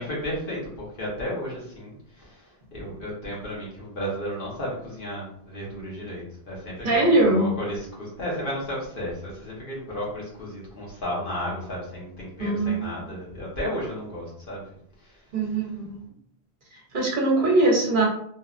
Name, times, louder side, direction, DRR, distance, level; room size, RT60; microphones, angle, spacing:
voice 1, 0.0-15.2, equal, 60° left, -5 dB, 1.2 m, -33 dB
voice 2, 6.8-7.5 12.4-12.9 15.3-16.0 16.7-18.1, right 2 dB, 55° right, -2 dB, 0.8 m, -22 dB
3.0 x 2.3 x 2.4 m, 0.67 s
omnidirectional pair, 1.1 m